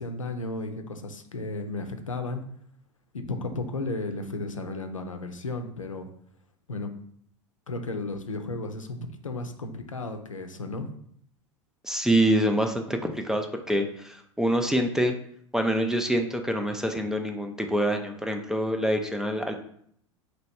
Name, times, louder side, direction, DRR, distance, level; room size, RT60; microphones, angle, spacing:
voice 1, 0.0-2.4 3.1-6.1 6.7-6.9 7.7-9.0 9.2-10.9, left 2 dB, 85° left, 6 dB, 0.5 m, -34 dB
voice 2, 11.8-15.1 15.5-19.6, right 1 dB, 5° right, 4 dB, 0.3 m, -26 dB
3.1 x 3.0 x 4.2 m, 0.65 s
figure-of-eight pair, 85°, 16 cm